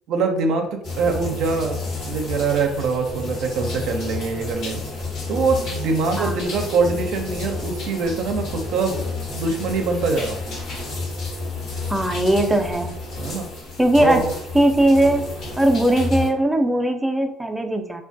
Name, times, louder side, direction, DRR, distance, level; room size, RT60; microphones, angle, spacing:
voice 1, 0.1-4.8 5.3-9.0 9.3-10.4 13.2-13.5 14.0-14.3, right 4 dB, 70° right, 4 dB, 0.4 m, -23 dB
sound 1, 0.8-16.3, left 3 dB, 60° left, 0.9 m, -31 dB
voice 2, 11.9-12.9 13.8-14.2 14.5-15.3 15.6-18.0, right 1 dB, 10° right, 5 dB, 0.4 m, -19 dB
2.4 x 2.2 x 2.5 m, 0.72 s
supercardioid pair, 80°, 0 cm